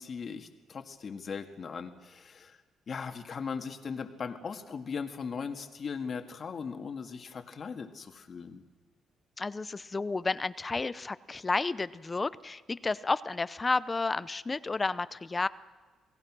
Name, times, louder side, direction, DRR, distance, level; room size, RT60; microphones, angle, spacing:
voice 1, 0.0-2.6 2.9-8.6, left 5 dB, 45° left, 7 dB, 1.9 m, -38 dB
voice 2, 9.4-15.5, left 3 dB, 25° left, 17 dB, 0.6 m, -31 dB
28.5 x 18.0 x 6.1 m, 1.5 s
cardioid pair, 90°, 0 cm